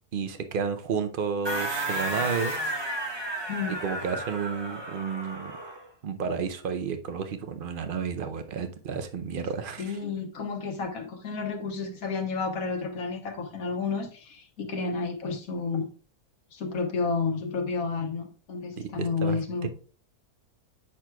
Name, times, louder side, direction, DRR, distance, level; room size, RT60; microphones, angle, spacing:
voice 1, 0.1-2.5 3.8-5.5 6.0-10.0 18.8-19.7, right 6 dB, 65° right, 0.5 m, -31 dB
sound 1, 1.4-5.9, right 1 dB, 25° right, 0.7 m, -33 dB
voice 2, 3.5-3.8 4.1-4.2 9.8-15.9 16.5-19.7, left 4 dB, 70° left, 1.5 m, -31 dB
8.6 x 6.0 x 2.3 m
omnidirectional pair, 1.6 m